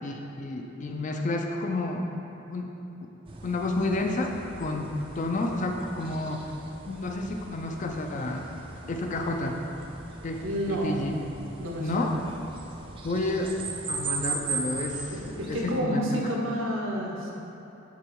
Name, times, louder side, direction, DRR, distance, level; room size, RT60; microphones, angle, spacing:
voice 1, 0.0-2.1 2.5-2.7 3.0-3.1 3.4-6.5 6.9-8.5 8.9-9.6 10.2-11.1 11.8-12.1 13.0-13.5 13.9-16.3, left 2 dB, 40° left, 2 dB, 0.4 m, -30 dB
sound 1, 3.3-15.8, right 4 dB, 25° right, 0.4 m, -39 dB
voice 2, 10.4-11.0 11.6-12.2 15.1-17.3, equal, 80° right, -2 dB, 0.9 m, -30 dB
6.7 x 3.0 x 4.6 m, 2.9 s
head